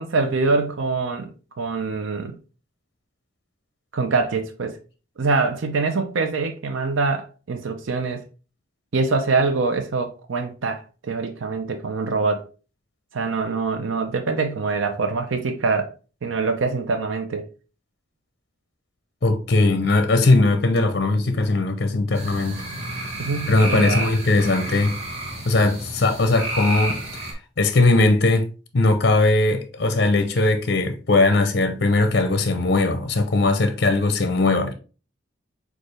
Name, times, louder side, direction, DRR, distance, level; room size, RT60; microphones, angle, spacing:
voice 1, 0.0-2.4 3.9-4.8 5.2-8.2 8.9-12.4 13.1-15.9 16.2-17.5 23.2-24.1, right 4 dB, 85° right, 0.6 m, -24 dB
voice 2, 19.2-22.6 23.5-25.0 25.5-27.0 27.6-28.5 28.7-34.7, left 2 dB, 55° left, 0.6 m, -19 dB
sound 1, 22.1-27.3, right 1 dB, 35° right, 1.1 m, -31 dB
6.4 x 2.4 x 3.2 m
head